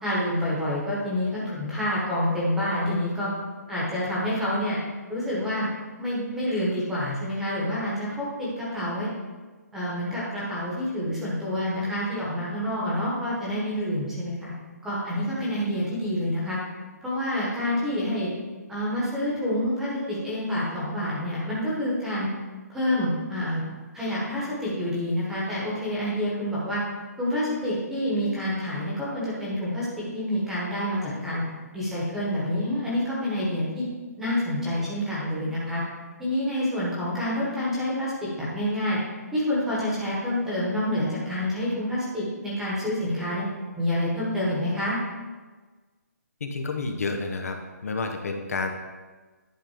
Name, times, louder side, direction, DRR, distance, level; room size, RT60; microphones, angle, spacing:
voice 1, 0.0-3.3 3.7-4.8 5.1-5.7 6.0-9.1 9.7-14.5 14.8-16.6 17.0-18.3 18.7-22.3 22.7-23.6 23.9-26.8 27.2-29.9 30.1-31.4 31.7-33.9 34.2-35.8 36.2-38.1 38.4-39.0 39.3-43.5 43.7-45.0, left 1 dB, 5° right, -8 dB, 1.3 m, -27 dB
voice 2, 46.4-47.6 47.8-48.7, left 3 dB, 60° left, 4 dB, 0.9 m, -29 dB
10.5 x 3.7 x 5.0 m, 1.3 s
hypercardioid pair, 175°, 9 cm